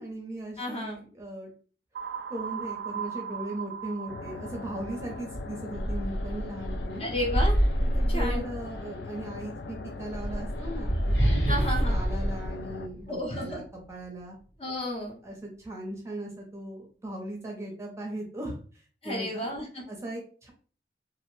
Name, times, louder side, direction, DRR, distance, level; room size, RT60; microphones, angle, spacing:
voice 1, 0.0-1.5 2.3-7.1 7.8-14.4 15.2-19.5 19.9-20.5, right 1 dB, 15° right, -1 dB, 0.6 m, -38 dB
voice 2, 0.6-1.0 7.0-7.6 8.1-8.5 11.5-12.0 13.1-13.6 14.6-15.2 19.0-19.8, left 1 dB, 35° left, -1 dB, 0.7 m, -32 dB
sound 1, 1.9-5.8, right 7 dB, 85° right, 0.4 m, -38 dB
sound 2, 4.1-12.9, left 3 dB, 70° left, 0.3 m, -41 dB
sound 3, 4.8-4.9 5.3-9.0 9.9-13.5, equal, 85° left, 1.5 m, -27 dB
2.5 x 2.1 x 3.1 m, 0.41 s
head